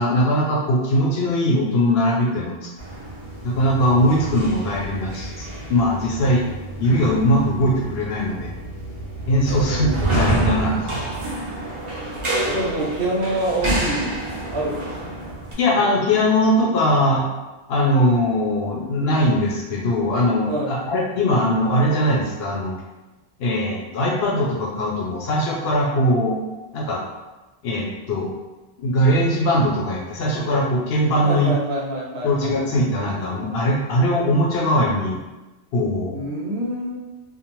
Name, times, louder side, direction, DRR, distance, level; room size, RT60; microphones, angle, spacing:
voice 1, 0.0-2.7 3.4-6.4 6.8-8.5 9.3-9.9 10.1-10.9 15.6-17.2 17.7-22.7 23.4-26.4 26.7-27.0 27.6-28.3 28.8-31.5 32.2-35.2 35.7-36.2, equal, 65° left, -2 dB, 0.7 m, -20 dB
sound 1, 2.8-15.5, right 1 dB, 35° right, 0.5 m, -28 dB
voice 2, 9.5-10.6 12.5-14.2 14.5-14.8 20.5-20.8 31.2-32.6 36.1-36.9, right 1 dB, 70° right, -3 dB, 0.8 m, -26 dB
2.6 x 2.0 x 2.9 m, 1.1 s
omnidirectional pair, 1.2 m